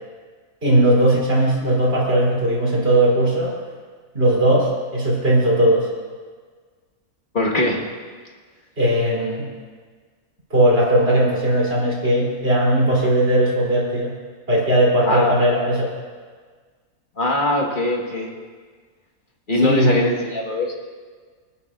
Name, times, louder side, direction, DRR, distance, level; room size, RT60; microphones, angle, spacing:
voice 1, 0.6-3.6 4.1-5.9 8.8-9.5 10.5-14.2 14.5-15.9 19.6-20.0, right 1 dB, 45° right, -4 dB, 3.5 m, -18 dB
voice 2, 7.3-7.8 15.1-15.4 17.2-18.3 19.5-20.8, left 1 dB, 35° left, -1 dB, 1.7 m, -21 dB
27.0 x 9.8 x 2.5 m, 1.6 s
omnidirectional pair, 1.5 m